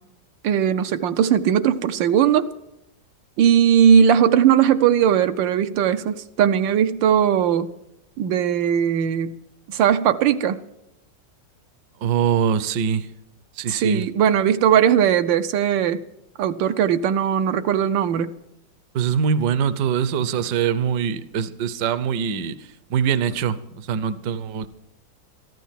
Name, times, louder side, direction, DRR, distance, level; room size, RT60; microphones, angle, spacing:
voice 1, 0.4-2.4 3.4-7.7 8.2-9.4 9.7-10.6 13.7-16.0 16.4-18.3, right 9 dB, 85° right, 8 dB, 1.4 m, -19 dB
voice 2, 12.0-13.1 13.6-14.1 18.9-24.7, right 7 dB, 70° right, 14 dB, 1.3 m, -23 dB
14.0 x 12.5 x 5.8 m, 0.86 s
omnidirectional pair, 2.0 m